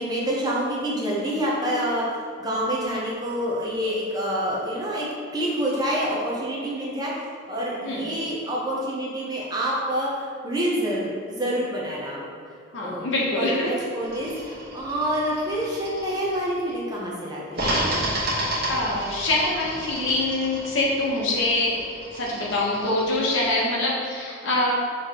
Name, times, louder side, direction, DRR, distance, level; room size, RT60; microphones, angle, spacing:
voice 1, 0.0-7.1 7.5-12.2 12.8-13.1 13.4-17.7, equal, 20° right, -5 dB, 0.6 m, -27 dB
voice 2, 12.7-13.7 18.7-21.8 22.1-24.7, left 2 dB, 65° left, -4 dB, 0.9 m, -24 dB
sound 1, 14.0-16.7 17.5-23.7, right 1 dB, 50° right, 1.1 m, -32 dB
5.6 x 3.1 x 2.9 m, 2.3 s
head